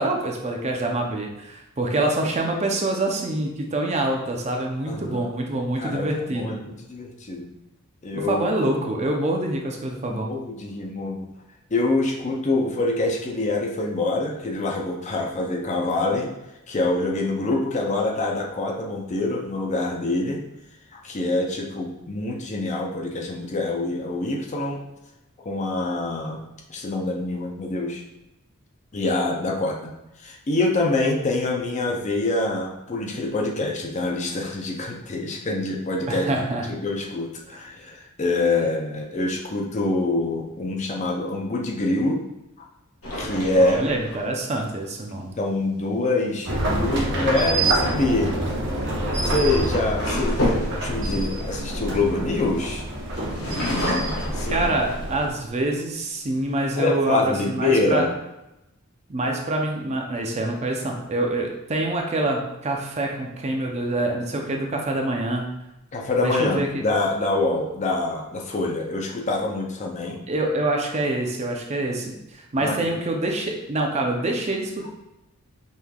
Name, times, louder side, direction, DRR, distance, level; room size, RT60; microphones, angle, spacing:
voice 1, 0.0-6.8 8.1-10.3 36.1-36.7 43.6-45.4 54.5-58.1 59.1-65.5 66.2-66.7 70.3-74.9, right 2 dB, 30° right, 1 dB, 0.5 m, -26 dB
voice 2, 4.9-5.3 5.8-7.5 8.0-8.4 10.1-11.3 11.7-16.3 16.7-20.4 20.9-24.8 25.4-26.4 26.7-28.0 28.9-29.9 30.2-36.3 36.7-42.2 43.2-43.8 45.4-48.3 49.2-52.8 53.8-54.7 56.8-58.1 65.9-70.2 72.6-72.9, left 2 dB, 30° left, 0 dB, 0.5 m, -25 dB
sound 1, 43.0-44.6 47.6-47.9 48.9-52.6 53.1-55.2 55.8-55.9 56.2-56.8, left 1 dB, 65° left, 1.3 m, -30 dB
sound 2, 46.4-55.3, right 1 dB, 55° right, 0.8 m, -26 dB
5.4 x 3.2 x 2.3 m, 0.92 s
head